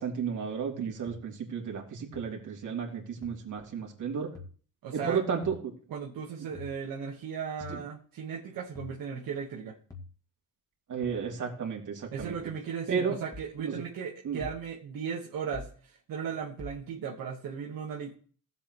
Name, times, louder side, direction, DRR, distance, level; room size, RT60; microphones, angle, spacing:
voice 1, 0.0-4.3 4.9-5.7 7.7-7.8 10.9-12.4 12.9-13.2 13.6-13.7 14.2-14.4, right 6 dB, 65° right, 1 dB, 2.8 m, -33 dB
sound 1, 1.1-1.2 2.1-2.2 3.2-3.3 4.4-4.5 5.4-5.6 6.6-6.8 7.6-7.8 8.8-9.0 9.9-10.1 11.0-11.3 12.2-12.4 13.3-13.5 14.4-14.6 15.5-15.8 16.6-16.8, left 3 dB, 10° left, 2.0 m, -44 dB
voice 2, 4.8-5.2 5.9-9.8 12.1-15.7 16.1-18.1, right 6 dB, 85° right, -2 dB, 1.6 m, -36 dB
16.0 x 7.9 x 3.1 m, 0.43 s
cardioid pair, 125°, 33 cm